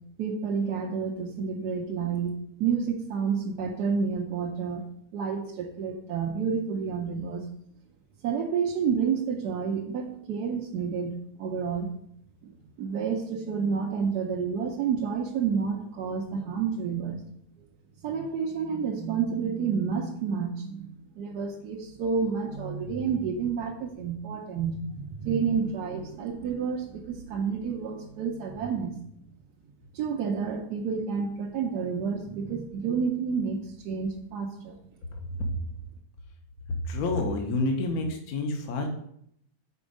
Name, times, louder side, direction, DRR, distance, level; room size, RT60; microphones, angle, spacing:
voice 1, 0.2-4.8 5.1-7.5 8.2-11.9 12.4-12.5 12.8-17.2 18.0-29.0 29.9-34.8, right 6 dB, 70° right, 0 dB, 1.2 m, -29 dB
voice 2, 36.9-38.9, left 2 dB, 60° left, 3 dB, 1.3 m, -28 dB
5.3 x 4.3 x 5.0 m, 0.71 s
omnidirectional pair, 1.9 m